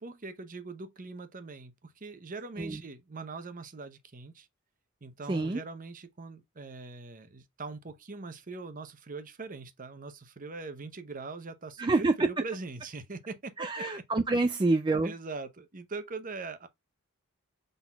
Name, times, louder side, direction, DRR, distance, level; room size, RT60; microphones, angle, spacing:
voice 1, 0.0-4.5 5.0-13.8 15.0-16.7, right 3 dB, 40° right, 0.8 m, -42 dB
voice 2, 5.3-5.6 11.8-12.1 13.6-15.1, right 2 dB, 20° right, 0.4 m, -27 dB
5.8 x 3.9 x 2.2 m
head